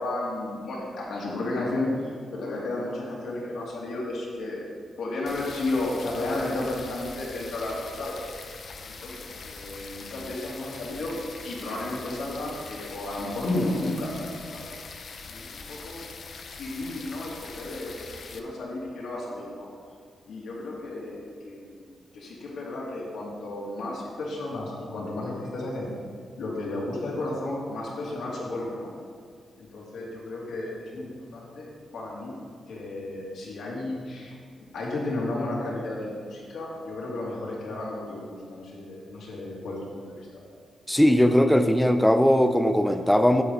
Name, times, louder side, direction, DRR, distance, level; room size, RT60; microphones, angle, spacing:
voice 1, 0.0-1.9 2.3-4.6 5.0-8.2 8.9-11.2 11.4-14.7 15.3-16.0 16.6-19.7 20.3-21.8 22.1-25.9 26.4-28.9 29.6-31.7 31.9-32.4 32.7-34.3 34.7-40.3, left 2 dB, 70° left, -4 dB, 2.5 m, -33 dB
sound 1, 5.3-18.4, left 4 dB, 45° left, 0.6 m, -42 dB
voice 2, 40.9-43.4, equal, ahead, 8 dB, 0.4 m, -19 dB
9.8 x 8.0 x 4.0 m, 2.1 s
wide cardioid pair, 180°, 0 cm